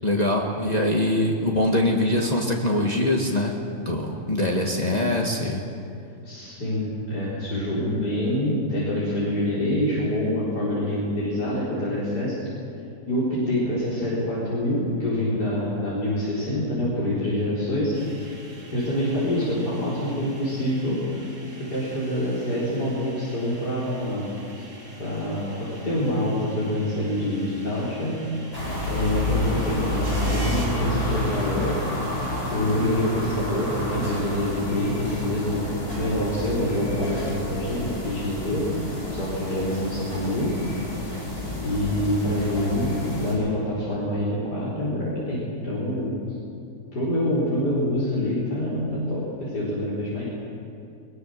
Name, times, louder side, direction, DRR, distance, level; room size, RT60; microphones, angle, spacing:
voice 1, 0.0-5.6, left 1 dB, 25° left, -1 dB, 1.8 m, -23 dB
voice 2, 6.2-12.4 13.1-17.9 18.7-21.2 21.6-24.7 25.0-28.2 28.9-31.8 32.5-35.7 36.0-38.6 39.1-40.6 41.6-46.1 46.9-50.2, left 1 dB, 90° left, -9 dB, 5.2 m, -26 dB
sound 1, 17.9-30.7, right 2 dB, 50° right, 3.7 m, -44 dB
sound 2, 28.5-43.3, left 1 dB, 70° left, 8.7 m, -29 dB
22.0 x 20.5 x 6.6 m, 2.5 s
omnidirectional pair, 1.7 m